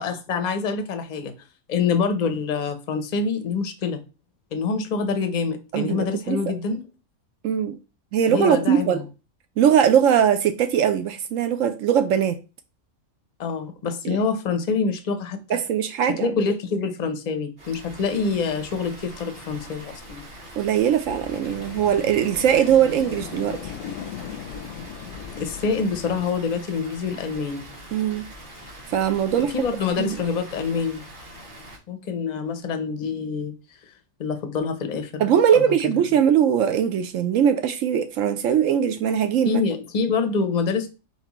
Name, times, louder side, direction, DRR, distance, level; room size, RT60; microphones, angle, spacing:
voice 1, 0.0-1.3 1.7-4.0 4.5-6.8 8.3-9.0 13.4-15.6 16.1-20.2 25.3-27.7 29.4-31.0 31.9-33.5 34.2-35.9 39.4-40.9, left 5 dB, 40° left, 0.6 m, -26 dB
voice 2, 5.7-6.4 7.4-7.8 8.1-9.0 9.6-12.4 14.0-14.2 15.5-16.3 20.6-23.7 27.9-28.3 28.9-29.5 30.0-30.2 35.2-39.6, right 9 dB, 70° right, 0.9 m, -20 dB
Water, 17.6-31.8, right 1 dB, 35° right, 1.6 m, -43 dB
sound 1, 21.1-26.3, left 8 dB, 70° left, 0.9 m, -37 dB
4.2 x 4.1 x 3.0 m
omnidirectional pair, 1.5 m